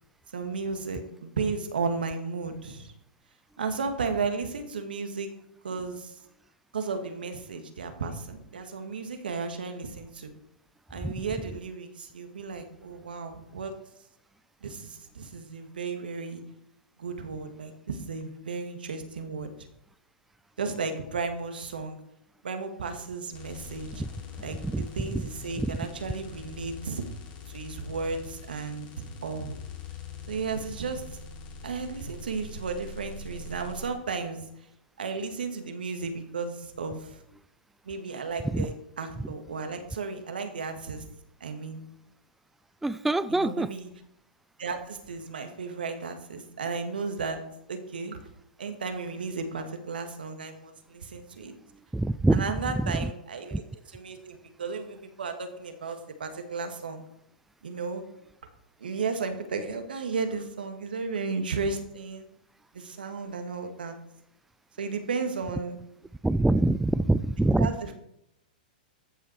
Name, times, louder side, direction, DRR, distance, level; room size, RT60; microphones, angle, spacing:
voice 1, 0.3-2.9 3.6-5.3 5.6-6.1 6.7-10.3 10.9-13.7 14.6-16.4 17.0-19.5 20.6-22.0 22.4-24.0 24.4-27.0 27.5-29.6 30.3-31.0 31.6-34.4 35.0-37.2 37.9-41.0 41.4-41.8 43.3-43.9 44.6-47.4 47.7-48.2 48.6-51.5 52.3-53.6 53.9-57.0 57.6-58.0 58.8-62.3 62.7-63.9 64.8-65.8 67.6-68.0, right 4 dB, 85° right, 6 dB, 2.1 m, -34 dB
sound 1, 23.3-33.9, left 4 dB, 40° left, 4.0 m, -43 dB
voice 2, 24.6-25.1 25.6-25.7 38.4-38.7 42.8-43.7 51.9-52.5 52.7-53.1 53.5-53.6 66.2-67.7, right 2 dB, 5° right, 15 dB, 0.3 m, -25 dB
14.0 x 7.7 x 4.7 m, 0.78 s
hypercardioid pair, 125°, 5 cm